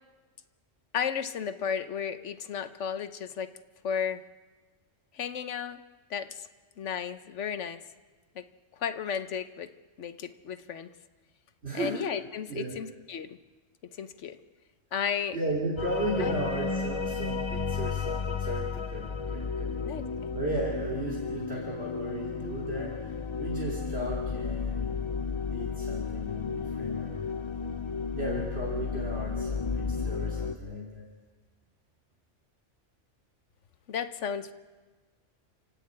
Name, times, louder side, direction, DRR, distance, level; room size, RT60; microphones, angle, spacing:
voice 1, 0.9-3.5 3.8-4.2 5.1-5.8 6.1-6.5 6.8-7.8 8.3-8.4 8.8-9.7 10.0-10.9 11.7-13.4 13.9-14.4 14.9-15.4 16.2-16.3 19.8-20.0 33.9-34.5, left 7 dB, 75° left, 10 dB, 1.3 m, -33 dB
voice 2, 11.6-12.0 12.5-12.7 15.3-20.0 20.3-24.9 25.5-27.3 28.1-31.1, right 1 dB, 55° right, -3 dB, 3.2 m, -35 dB
sound 1, 15.8-30.6, left 5 dB, 35° left, 0.5 m, -33 dB
30.0 x 10.0 x 8.7 m, 1.3 s
omnidirectional pair, 1.3 m